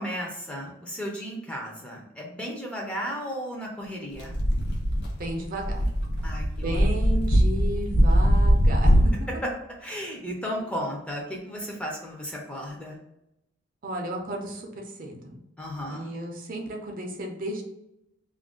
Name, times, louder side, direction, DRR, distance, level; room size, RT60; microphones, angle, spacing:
voice 1, 0.0-4.4 6.2-6.8 9.8-13.0 15.6-16.1, equal, 5° left, -2 dB, 0.5 m, -34 dB
sound 1, 4.2-9.1, equal, 55° left, 0.6 m, -21 dB
voice 2, 5.2-5.8 6.6-9.3 13.8-15.4 15.9-17.6, right 1 dB, 45° right, 1 dB, 0.5 m, -33 dB
2.4 x 2.1 x 3.6 m, 0.86 s
head